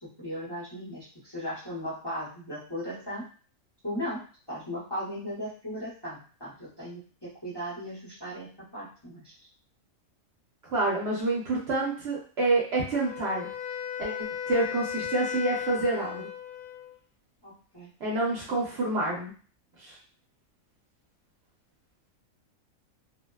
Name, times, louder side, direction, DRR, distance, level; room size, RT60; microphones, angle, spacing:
voice 1, 0.0-3.2 3.8-9.3 17.4-17.9, equal, 20° left, -9 dB, 0.9 m, -37 dB
voice 2, 10.7-13.5 14.0-14.1 14.5-16.3 18.0-19.3 19.8-20.0, right 2 dB, 55° right, -5 dB, 0.9 m, -28 dB
Wind instrument woodwind instrument, 12.9-17.0, left 9 dB, 75° left, 0.4 m, -35 dB
2.7 x 2.1 x 2.2 m, 0.40 s
omnidirectional pair, 1.4 m